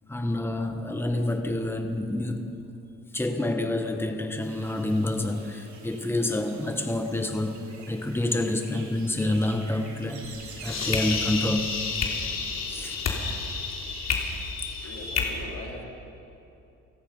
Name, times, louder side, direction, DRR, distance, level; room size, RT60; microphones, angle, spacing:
voice 1, 0.1-2.7 3.1-10.3 10.6-11.8 12.7-13.0 14.8-14.9, left 1 dB, 10° left, 5 dB, 1.6 m, -28 dB
sound 1, 4.4-11.1, right 4 dB, 65° right, 4.2 m, -47 dB
sound 2, 10.2-15.2, left 5 dB, 60° left, 3.7 m, -30 dB
voice 2, 14.8-15.9, left 2 dB, 85° left, -2 dB, 4.5 m, -40 dB
29.5 x 18.5 x 5.6 m, 2.8 s
cardioid pair, 90°, 30 cm